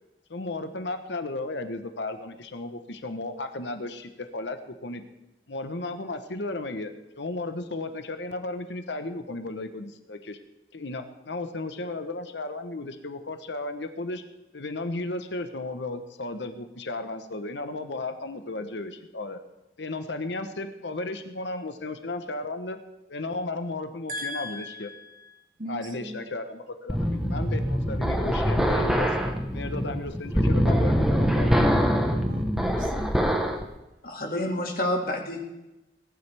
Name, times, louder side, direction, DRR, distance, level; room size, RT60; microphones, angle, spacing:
voice 1, 0.3-5.0 5.5-6.9 7.2-10.4 10.7-14.2 14.5-19.4 19.8-22.8 23.1-24.9 25.7-29.1 29.5-32.2, left 2 dB, 75° left, 8 dB, 1.0 m, -34 dB
voice 2, 24.1-26.2 31.0-33.2, equal, 45° right, 4 dB, 1.6 m, -37 dB
sound 1, 26.9-33.6, equal, ahead, 1.0 m, -24 dB
voice 3, 34.0-35.5, left 1 dB, 50° left, 1 dB, 2.1 m, -29 dB
19.5 x 10.5 x 3.4 m, 0.98 s
head